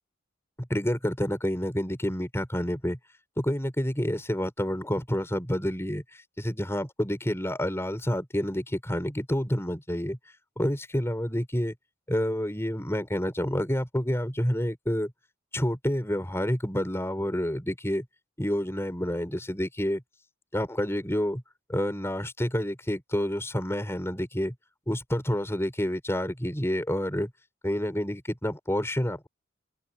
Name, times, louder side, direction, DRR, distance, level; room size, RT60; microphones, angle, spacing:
voice 1, 0.6-3.0 3.4-6.0 6.4-10.2 10.6-11.7 12.1-15.1 15.5-18.0 18.4-20.0 20.5-21.4 21.7-24.5 24.9-27.3 27.6-29.3, equal, 15° left, 5.0 m, -28 dB
head